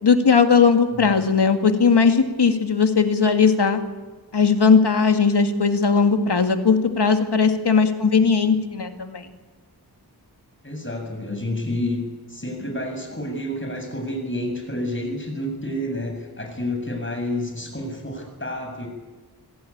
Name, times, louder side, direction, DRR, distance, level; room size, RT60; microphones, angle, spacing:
voice 1, 0.0-3.8 4.3-9.3, left 5 dB, 80° left, 6 dB, 2.1 m, -18 dB
voice 2, 10.6-12.0 12.3-18.9, left 1 dB, 30° left, 3 dB, 7.5 m, -29 dB
26.0 x 17.0 x 8.7 m, 1.3 s
wide cardioid pair, 60°, 40 cm